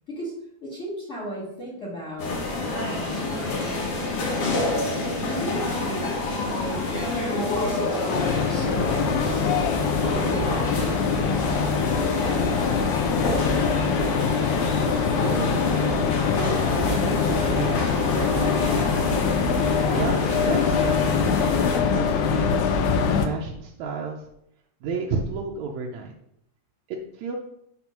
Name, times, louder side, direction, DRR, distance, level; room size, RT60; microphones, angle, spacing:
voice 1, 0.6-3.6 5.3-6.9 7.2-12.7, right 1 dB, 25° left, -6 dB, 2.3 m, -36 dB
sound 1, 2.2-21.8, left 2 dB, 60° left, 2.2 m, -28 dB
sound 2, 8.1-23.3, left 6 dB, 90° left, 2.1 m, -24 dB
voice 2, 15.1-15.7 16.4-19.3 19.9-21.5 21.9-22.8 23.2-24.2 24.8-26.1 26.9-27.4, right 4 dB, 80° right, -1 dB, 2.0 m, -32 dB
6.0 x 4.3 x 5.7 m, 0.77 s
omnidirectional pair, 3.3 m